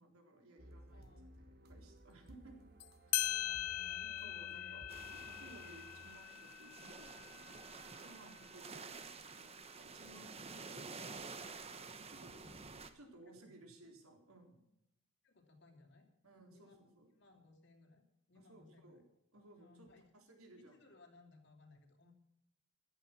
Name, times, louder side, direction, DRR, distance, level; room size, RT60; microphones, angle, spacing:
voice 1, 0.0-1.1 1.4-2.6 3.0-3.2 4.2-7.6 7.9-12.3 12.9-14.7 16.2-17.1 18.3-19.1 19.3-20.8, right 1 dB, 75° right, 2 dB, 3.9 m, -60 dB
sound 1, 0.6-6.7, equal, 45° right, 1.5 m, -59 dB
voice 2, 0.9-1.3 3.2-4.8 12.3-12.7 13.3-13.5 15.2-16.1 16.4-16.8 17.2-18.0 18.3-19.0 19.6-20.0 20.7-22.1, left 3 dB, 50° left, 4 dB, 2.9 m, -63 dB
sound 2, 2.8-2.9 3.1-8.2, left 14 dB, 90° left, 0.7 m, -41 dB
sound 3, 4.9-12.9, right 4 dB, 25° right, 1.1 m, -50 dB
15.0 x 11.5 x 6.0 m, 0.79 s
head